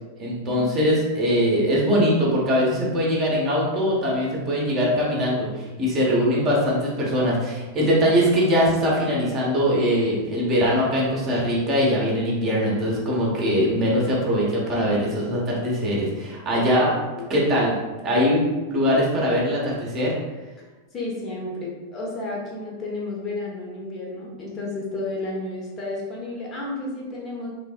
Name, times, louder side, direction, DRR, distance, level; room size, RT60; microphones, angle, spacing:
voice 1, 0.2-16.9 17.3-17.8 18.0-20.1, equal, 30° right, -4 dB, 0.7 m, -22 dB
voice 2, 20.9-27.5, left 2 dB, 30° left, -3 dB, 0.7 m, -32 dB
3.2 x 2.0 x 2.4 m, 1.2 s
figure-of-eight pair, 90°, 0 cm